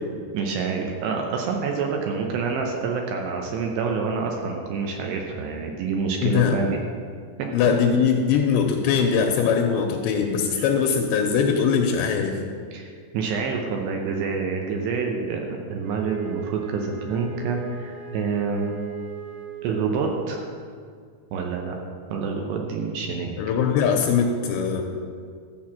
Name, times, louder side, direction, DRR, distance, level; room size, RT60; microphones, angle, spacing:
voice 1, 0.3-6.8 10.6-10.7 12.7-18.8 19.6-20.5 21.3-21.8 22.1-23.3, right 5 dB, 75° right, 1 dB, 2.6 m, -27 dB
voice 2, 6.2-6.6 7.5-12.4 23.4-24.8, left 6 dB, 85° left, 3 dB, 2.7 m, -21 dB
Wind instrument woodwind instrument, 15.8-20.0, right 8 dB, 50° right, 2.9 m, -38 dB
13.0 x 4.7 x 7.4 m, 2.1 s
omnidirectional pair, 5.6 m